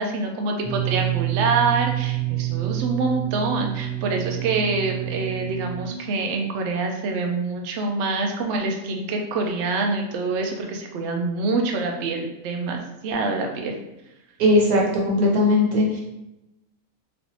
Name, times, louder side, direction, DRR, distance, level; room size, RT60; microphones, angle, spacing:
voice 1, 0.0-13.8, right 3 dB, 65° right, 2 dB, 0.7 m, -26 dB
sound 1, 0.6-5.9, right 17 dB, 30° right, 0.6 m, -27 dB
voice 2, 14.4-16.0, left 1 dB, 85° right, -2 dB, 1.3 m, -19 dB
3.2 x 2.5 x 2.7 m, 0.92 s
omnidirectional pair, 1.5 m